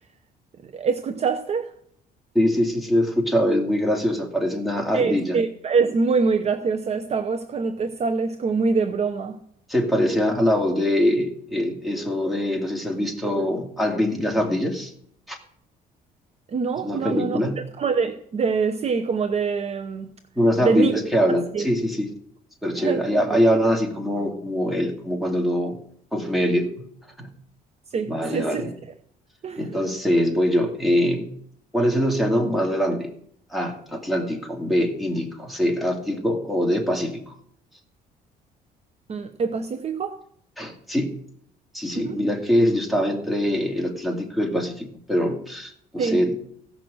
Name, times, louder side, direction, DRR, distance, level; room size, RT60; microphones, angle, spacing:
voice 1, 0.6-1.7 4.9-9.4 16.5-17.4 17.8-20.1 20.6-20.9 21.5-21.7 22.8-23.0 27.9-28.6 29.4-29.6 39.1-40.2 41.9-42.2 46.0-46.2, right 5 dB, 40° right, 0.8 m, -24 dB
voice 2, 2.3-5.4 9.7-14.9 15.3-15.4 16.8-17.6 20.4-22.1 22.6-25.7 26.1-26.7 27.2-27.3 28.1-28.7 29.6-31.3 31.7-33.1 33.5-37.3 40.6-41.1 41.7-46.4, equal, ahead, 2.4 m, -23 dB
16.0 x 6.2 x 6.3 m
cardioid pair, 110°, 17 cm